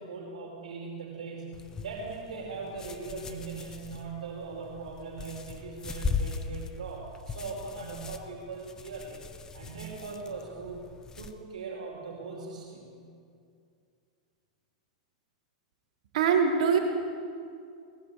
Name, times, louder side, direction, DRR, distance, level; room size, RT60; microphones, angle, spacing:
voice 1, 0.0-9.2 9.5-10.9 11.2-12.9, right 4 dB, 90° right, -1 dB, 5.0 m, -40 dB
sound 1, 1.5-11.3, left 4 dB, 15° left, 1.4 m, -39 dB
voice 2, 16.1-16.8, right 6 dB, 70° right, 0 dB, 5.0 m, -22 dB
21.0 x 19.0 x 8.8 m, 2.4 s
hypercardioid pair, 135°, 4 cm